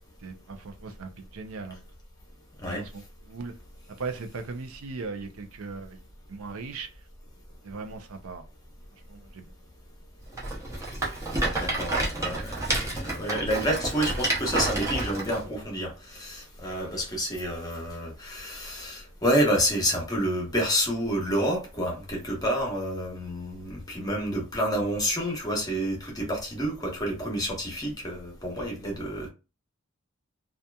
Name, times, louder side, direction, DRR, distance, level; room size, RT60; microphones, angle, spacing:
voice 1, 0.2-1.8 2.6-3.5 3.9-6.0 6.3-6.9 7.6-8.4 9.1-9.5, right 4 dB, 75° right, 0.5 m, -38 dB
Rattle, 10.3-15.4, right 2 dB, 15° right, 0.6 m, -29 dB
voice 2, 11.6-29.3, equal, 15° left, 0.8 m, -29 dB
2.7 x 2.4 x 2.2 m
head